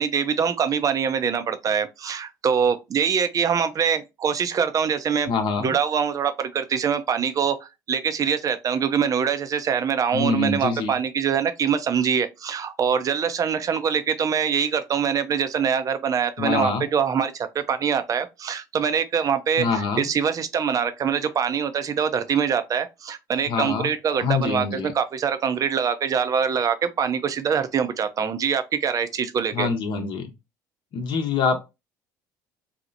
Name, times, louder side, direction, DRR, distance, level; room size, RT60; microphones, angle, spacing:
voice 1, 0.0-5.3 5.6-29.7, right 7 dB, 35° right, 0.4 m, -24 dB
voice 2, 5.3-5.7 10.1-10.9 16.4-16.8 19.6-20.1 23.5-23.9 24.2-24.9 29.5-30.3 30.9-31.6, left 5 dB, 55° left, 0.8 m, -25 dB
2.8 x 2.0 x 2.6 m
hypercardioid pair, 65°, 10 cm